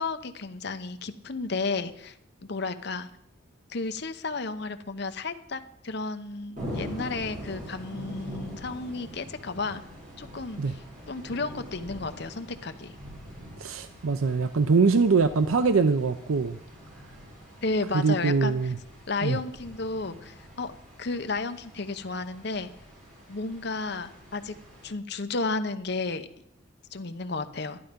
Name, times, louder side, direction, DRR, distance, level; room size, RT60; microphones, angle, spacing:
voice 1, 0.0-2.2 2.4-3.1 3.7-9.8 10.2-12.9 17.6-18.7 19.1-20.7 21.0-22.7 23.3-24.5 24.8-26.3 26.9-27.8, left 3 dB, 55° left, 9 dB, 0.8 m, -33 dB
sound 1, 6.6-24.9, equal, 40° right, 5.4 m, -44 dB
voice 2, 13.6-16.6 17.9-18.8 19.2-19.4, right 4 dB, 90° right, 10 dB, 0.6 m, -23 dB
12.5 x 11.0 x 5.2 m, 0.76 s
head